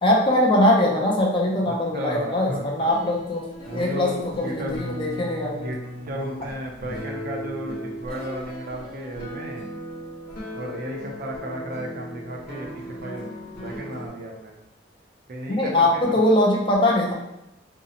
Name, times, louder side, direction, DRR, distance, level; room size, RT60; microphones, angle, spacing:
voice 1, 0.0-3.5 3.7-5.7 15.5-17.1, left 1 dB, 30° left, -2 dB, 0.4 m, -21 dB
voice 2, 1.6-3.1 3.7-4.7 5.5-5.8 6.1-9.7 10.5-14.5 15.3-16.2, right 1 dB, 55° right, 0 dB, 0.4 m, -34 dB
sound 1, 2.9-14.1, equal, 55° left, 0.7 m, -37 dB
2.6 x 2.0 x 2.7 m, 0.89 s
head